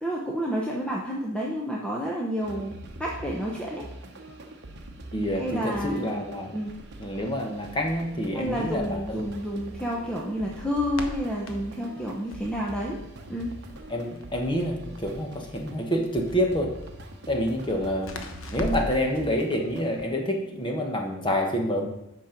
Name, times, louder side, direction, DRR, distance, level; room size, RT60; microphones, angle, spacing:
voice 1, 0.0-2.7 3.0-3.9 5.4-6.1 6.5-6.7 8.3-13.0 13.3-13.5, equal, 5° left, -3 dB, 0.8 m, -30 dB
sound 1, 2.4-20.0, right 1 dB, 50° right, 0.9 m, -43 dB
voice 2, 5.1-6.6 7.0-9.2 13.9-16.7 17.3-21.9, equal, 20° left, 2 dB, 1.2 m, -27 dB
Crackle, 7.5-19.1, left 1 dB, 65° left, 1.0 m, -42 dB
8.5 x 6.1 x 5.1 m, 0.85 s
head